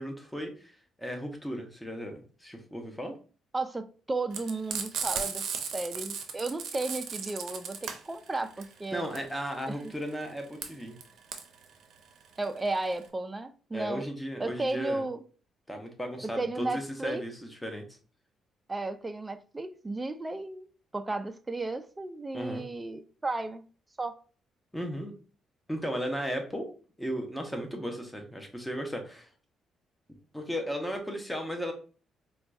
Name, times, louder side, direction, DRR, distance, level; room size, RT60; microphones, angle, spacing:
voice 1, 0.0-3.1 8.9-11.0 13.7-15.0 15.7-17.8 22.3-22.6 24.7-25.1 25.7-26.7 27.0-29.3 30.3-31.7, equal, 5° left, 0.8 m, -35 dB
voice 2, 3.5-5.4 5.7-9.1 9.7-9.8 12.4-14.0 14.4-15.2 16.4-17.2 18.7-20.7 20.9-23.6 24.0-24.2, right 2 dB, 20° right, 0.4 m, -34 dB
Frying (food), 4.3-13.1, right 6 dB, 70° right, 0.6 m, -36 dB
4.4 x 2.3 x 2.6 m
cardioid pair, 90°, 0 cm